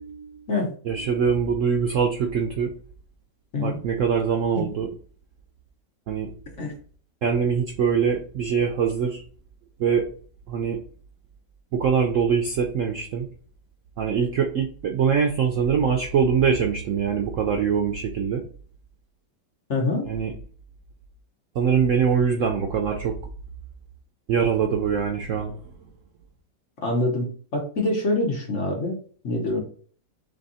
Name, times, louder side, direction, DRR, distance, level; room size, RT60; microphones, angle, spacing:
voice 1, 0.9-2.7 3.6-4.9 6.1-6.3 7.2-9.2 9.8-10.1 10.5-10.8 11.7-13.3 14.0-18.5 20.1-20.3 21.5-23.2 24.3-25.6, right 6 dB, 90° right, 3 dB, 0.6 m, -23 dB
voice 2, 19.7-20.1 26.8-29.0 29.2-29.6, left 2 dB, 45° left, 0 dB, 1.3 m, -25 dB
3.5 x 3.4 x 4.0 m, 0.43 s
omnidirectional pair, 2.0 m